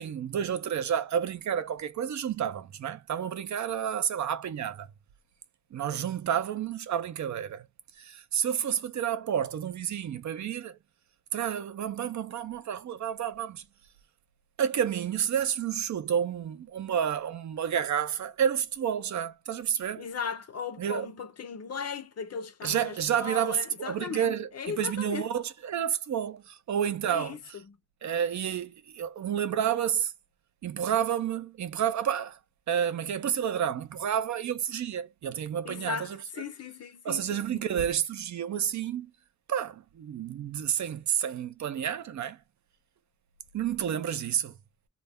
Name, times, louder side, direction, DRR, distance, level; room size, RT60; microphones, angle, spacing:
voice 1, 0.0-4.9 5.7-7.7 8.0-10.8 11.3-13.6 14.6-20.1 20.8-21.1 22.6-27.6 28.0-30.1 30.6-32.4 32.7-36.2 37.0-39.1 39.5-42.4 43.5-44.6, right 9 dB, 70° right, 0.4 m, -30 dB
voice 2, 20.0-25.3 27.0-27.8 35.6-37.6, left 6 dB, 55° left, 0.5 m, -37 dB
2.3 x 2.1 x 3.4 m
wide cardioid pair, 130°, 30 cm